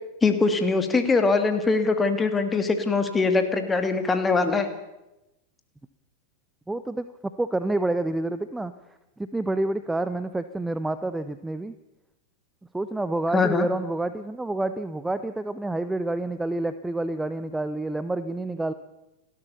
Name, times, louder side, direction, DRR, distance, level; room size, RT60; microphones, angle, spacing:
voice 1, 0.2-4.7 13.3-13.7, left 4 dB, 15° left, 8 dB, 2.6 m, -22 dB
voice 2, 6.7-11.7 12.7-18.7, right 2 dB, 5° right, 13 dB, 0.8 m, -28 dB
29.5 x 12.5 x 7.0 m, 0.95 s
figure-of-eight pair, 90°, 0 cm